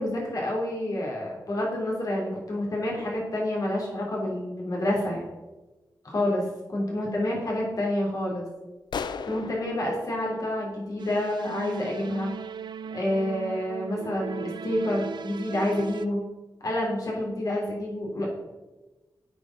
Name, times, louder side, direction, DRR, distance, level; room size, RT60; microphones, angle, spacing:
voice 1, 0.0-5.3 6.0-6.4 6.7-8.4 9.3-12.3 12.9-16.2 16.6-18.3, left 1 dB, 50° left, -3 dB, 3.3 m, -28 dB
sound 1, 8.9-11.5, left 5 dB, 80° left, 0.5 m, -37 dB
sound 2, 11.0-16.1, right 6 dB, 90° right, 0.5 m, -37 dB
7.9 x 7.2 x 6.0 m, 1.1 s
wide cardioid pair, 165°, 7 cm